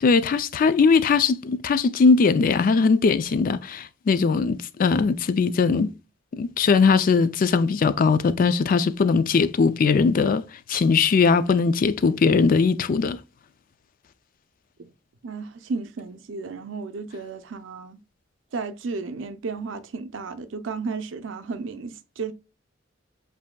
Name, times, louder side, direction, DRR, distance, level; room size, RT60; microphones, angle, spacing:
voice 1, 0.0-5.9 6.4-10.4 10.7-13.2, left 4 dB, 45° left, 0.3 m, -20 dB
voice 2, 15.2-18.0 18.5-22.3, right 4 dB, 75° right, 0.5 m, -33 dB
7.4 x 2.7 x 2.2 m
head